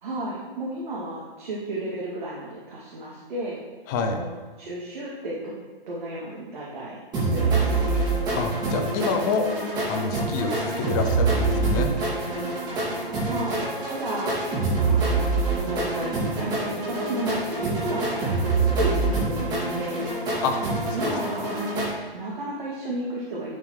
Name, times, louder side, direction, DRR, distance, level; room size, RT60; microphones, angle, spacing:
voice 1, 0.0-3.6 4.1-5.5 5.9-8.0 13.3-14.6 14.8-20.1 20.7-21.8 22.1-23.6, right 1 dB, 50° right, -6 dB, 2.5 m, -33 dB
voice 2, 3.9-4.2 8.4-11.9 20.4-20.6 21.1-21.2, left 4 dB, 20° left, 5 dB, 0.7 m, -27 dB
sound 1, 7.1-21.9, right 3 dB, 15° right, 2.4 m, -25 dB
9.6 x 7.3 x 3.3 m, 1.5 s
hypercardioid pair, 145°, 30 cm